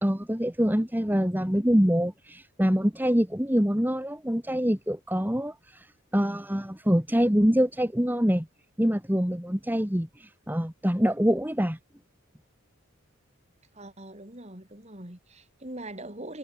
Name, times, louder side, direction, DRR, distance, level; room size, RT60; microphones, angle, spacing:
voice 1, 0.0-5.9 6.1-8.5 8.8-11.8, equal, 10° right, 1.8 m, -25 dB
voice 2, 13.7-16.4, right 1 dB, 30° right, 3.6 m, -42 dB
head